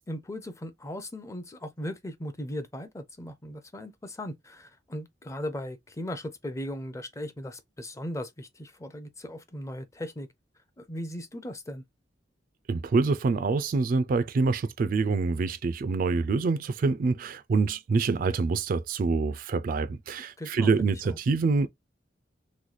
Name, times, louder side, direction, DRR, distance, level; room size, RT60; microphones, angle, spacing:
voice 1, 0.1-10.3 10.8-11.8 20.4-21.2, left 1 dB, 15° left, 0.5 m, -38 dB
voice 2, 12.7-21.7, right 4 dB, 50° right, 0.3 m, -26 dB
3.1 x 2.1 x 3.9 m
head